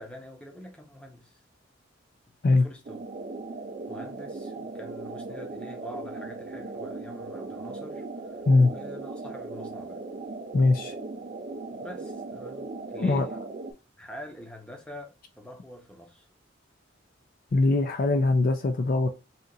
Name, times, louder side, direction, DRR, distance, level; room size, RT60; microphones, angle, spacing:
voice 1, 0.0-1.4 2.5-3.0 3.9-10.0 11.7-13.3 14.0-16.3, equal, 5° left, 0.7 m, -45 dB
sound 1, 2.9-13.7, right 3 dB, 35° right, 0.4 m, -38 dB
voice 2, 10.5-10.9 13.0-13.2 17.5-19.1, left 3 dB, 45° left, 0.4 m, -21 dB
2.8 x 2.4 x 3.8 m
head